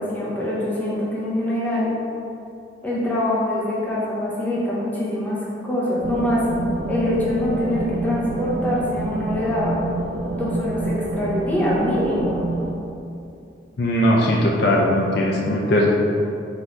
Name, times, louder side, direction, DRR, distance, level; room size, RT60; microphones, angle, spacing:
voice 1, 0.0-1.9 2.8-6.4 6.9-9.7 10.3-12.4, left 1 dB, 10° left, -7 dB, 0.8 m, -24 dB
sound 1, 6.0-12.8, right 3 dB, 50° right, 0.3 m, -28 dB
voice 2, 13.8-16.0, left 1 dB, 60° left, -2 dB, 0.5 m, -19 dB
4.1 x 2.7 x 4.4 m, 2.6 s
head